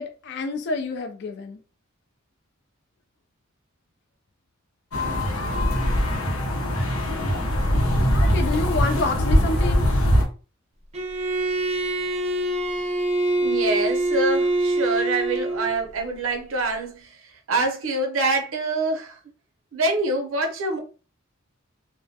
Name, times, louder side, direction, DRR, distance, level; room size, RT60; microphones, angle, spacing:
voice 1, 0.0-1.6 8.2-9.9, left 3 dB, 50° left, 0.3 m, -28 dB
sound 1, 4.9-10.2, equal, 85° left, 0.7 m, -22 dB
Bowed string instrument, 10.9-15.8, right 2 dB, 30° right, 0.3 m, -24 dB
voice 2, 13.4-17.2 17.5-19.2 19.7-20.8, right 2 dB, 70° right, 0.6 m, -25 dB
2.2 x 2.1 x 2.6 m
head